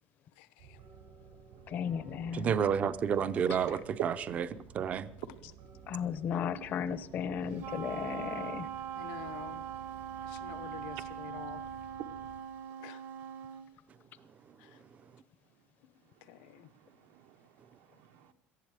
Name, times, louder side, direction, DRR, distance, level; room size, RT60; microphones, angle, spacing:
voice 1, 0.4-0.8 9.0-9.6 10.2-11.6 12.8-13.0 14.6-14.7 16.3-16.7, left 13 dB, 80° left, 14 dB, 0.9 m, -48 dB
sound 1, 0.6-12.4, right 7 dB, 90° right, 5.3 m, -54 dB
voice 2, 1.7-2.5 5.9-8.7, left 8 dB, 35° left, 15 dB, 0.7 m, -35 dB
voice 3, 2.3-5.1, right 7 dB, 25° right, 14 dB, 0.5 m, -30 dB
Wind instrument woodwind instrument, 7.6-13.7, right 8 dB, 50° right, 1.1 m, -41 dB
voice 4, 16.7-18.3, right 15 dB, 70° right, 10 dB, 1.1 m, -52 dB
18.0 x 13.5 x 4.9 m, 0.79 s
cardioid pair, 170°, 5 cm